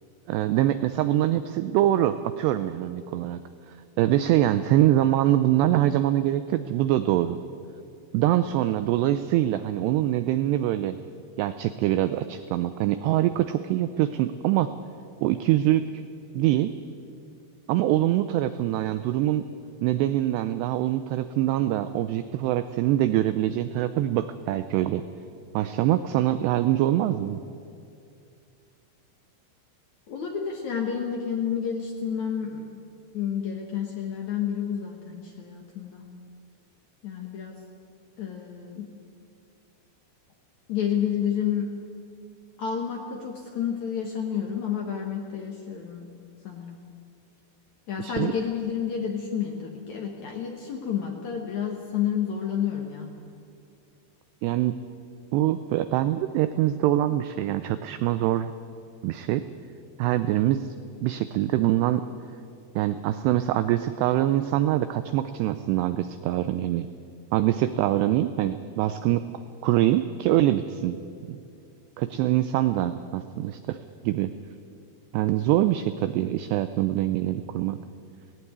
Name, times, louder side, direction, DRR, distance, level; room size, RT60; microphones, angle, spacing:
voice 1, 0.3-3.4 3.7-7.4 8.1-11.0 11.4-14.7 15.2-15.8 16.3-16.7 17.7-19.5 19.8-25.0 25.5-27.4 48.0-48.3 54.4-54.8 55.3-58.5 59.0-59.4 60.0-60.7 61.0-62.0 62.8-66.9 67.3-69.3 69.6-71.0 71.3-71.4 72.0-73.8 74.0-74.3 75.1-77.8, right 13 dB, 90° right, 11 dB, 2.4 m, -24 dB
voice 2, 30.1-32.8 33.1-36.0 37.0-37.6 38.2-38.9 40.7-41.7 42.6-46.1 46.4-46.8 47.9-53.1, left 8 dB, 80° left, 1 dB, 1.6 m, -30 dB
17.5 x 16.0 x 9.5 m, 2.4 s
omnidirectional pair, 5.5 m